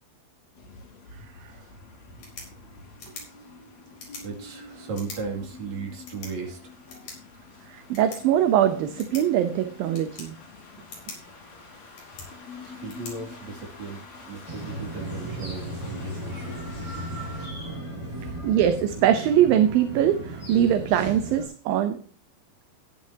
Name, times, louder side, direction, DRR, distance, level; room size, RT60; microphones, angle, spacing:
sound 1, 0.5-17.5, left 4 dB, 85° left, 6.4 m, -46 dB
sound 2, 2.0-14.0, left 3 dB, 65° left, 6.1 m, -47 dB
voice 1, 4.2-6.6 12.6-16.6 18.2-18.5, right 4 dB, 50° right, 0 dB, 3.5 m, -36 dB
voice 2, 7.7-10.4 18.4-22.0, right 10 dB, 75° right, 8 dB, 2.5 m, -22 dB
sound 3, 14.5-21.5, right 1 dB, 5° right, 7.1 m, -36 dB
15.0 x 11.0 x 2.8 m, 0.44 s
omnidirectional pair, 4.5 m